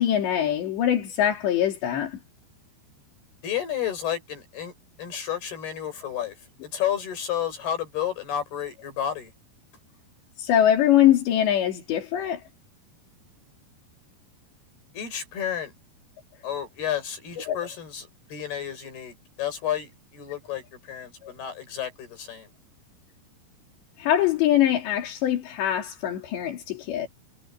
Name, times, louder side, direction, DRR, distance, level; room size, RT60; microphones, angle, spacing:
voice 1, 0.0-2.2 10.4-12.4 17.5-17.6 21.2-21.3 24.0-27.1, left 11 dB, 80° left, 5.0 m, -23 dB
voice 2, 3.4-4.7 5.0-6.4 6.6-9.3 14.9-15.7 16.4-22.5, left 10 dB, 65° left, 7.6 m, -31 dB
omnidirectional pair, 5.0 m